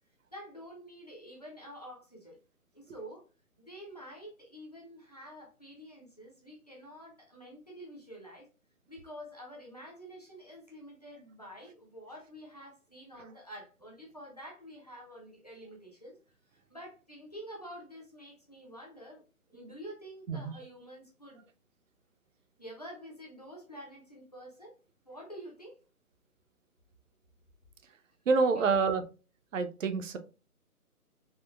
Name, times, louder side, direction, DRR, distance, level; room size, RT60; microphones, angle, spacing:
voice 1, 0.3-2.4 2.7-3.2 3.6-8.5 8.9-16.2 16.4-19.2 19.5-21.5 22.6-24.8 25.0-25.8 28.6-29.0, equal, 30° left, 0.5 m, -48 dB
voice 2, 28.3-29.0 29.5-30.2, right 4 dB, 60° right, 0.5 m, -27 dB
3.6 x 2.1 x 2.3 m
figure-of-eight pair, 160°, 45 cm